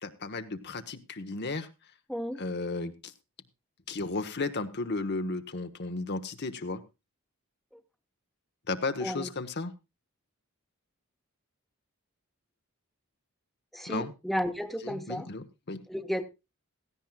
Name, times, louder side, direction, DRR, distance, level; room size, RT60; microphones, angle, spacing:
voice 1, 0.0-1.7 2.4-3.1 3.9-6.8 8.7-9.7 13.9-14.1 14.8-15.8, left 3 dB, 55° left, 1.2 m, -34 dB
voice 2, 2.1-2.4 7.7-7.8 9.0-9.3 13.7-15.3 15.9-16.3, equal, ahead, 1.2 m, -33 dB
16.5 x 15.0 x 2.3 m
head